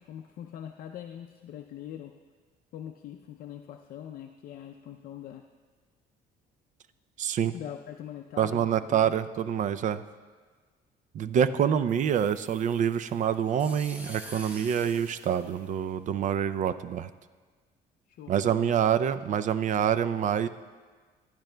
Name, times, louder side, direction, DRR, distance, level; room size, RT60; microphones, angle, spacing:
voice 1, 0.0-2.2 2.7-5.5 7.5-9.1 18.1-18.8, left 10 dB, 60° left, 4 dB, 0.5 m, -43 dB
voice 2, 7.2-7.5 8.4-10.0 11.1-17.1 18.3-20.5, right 8 dB, 45° right, 13 dB, 0.4 m, -26 dB
sound 1, 11.9-16.2, equal, 10° right, 1.0 m, -48 dB
15.5 x 10.5 x 2.2 m, 1.5 s
cardioid pair, 110°, 17 cm